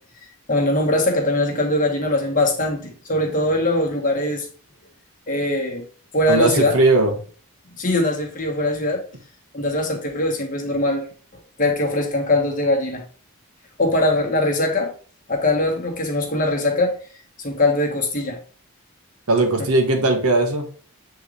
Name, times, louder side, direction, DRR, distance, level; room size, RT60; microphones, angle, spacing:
voice 1, 0.5-4.5 5.3-5.8 6.1-6.7 7.8-9.0 9.5-11.1 11.6-13.0 13.8-14.9 15.3-17.0 17.4-18.4, left 1 dB, 35° left, 1.7 m, -21 dB
voice 2, 6.3-7.1 19.3-20.6, right 2 dB, 80° right, 1.7 m, -18 dB
7.9 x 3.9 x 3.3 m
head